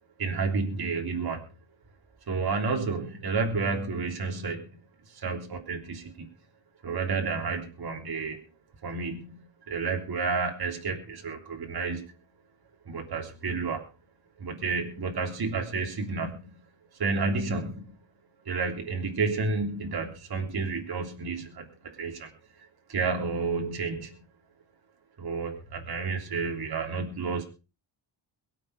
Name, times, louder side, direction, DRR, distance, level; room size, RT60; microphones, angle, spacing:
voice 1, 0.2-1.6 2.3-4.8 5.1-6.3 6.8-8.5 8.8-12.1 12.9-13.9 14.4-16.6 16.9-18.0 18.5-22.3 22.9-24.2 25.2-27.4, right 4 dB, 55° right, 2 dB, 3.3 m, -31 dB
23.0 x 7.8 x 4.9 m, 0.32 s
cardioid pair, 115°, 44 cm